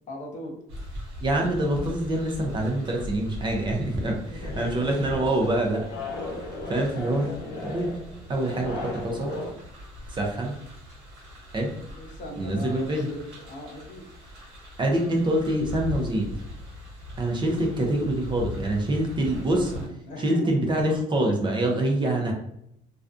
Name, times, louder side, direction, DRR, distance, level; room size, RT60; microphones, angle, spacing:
voice 1, 0.1-0.6 4.1-4.6 11.9-14.0 20.1-20.5, equal, 45° left, -1 dB, 0.8 m, -38 dB
sound 1, 0.7-19.9, left 1 dB, 85° right, 1.1 m, -40 dB
voice 2, 1.2-5.9 6.4-7.9 8.3-9.3 10.1-10.6 11.5-11.8 12.4-13.1 14.8-16.3 17.2-19.7 20.2-22.3, right 1 dB, 30° right, 1 dB, 0.5 m, -25 dB
sound 2, 4.4-9.5, left 2 dB, 85° left, 0.6 m, -36 dB
2.4 x 2.2 x 2.4 m, 0.76 s
cardioid pair, 110°, 17 cm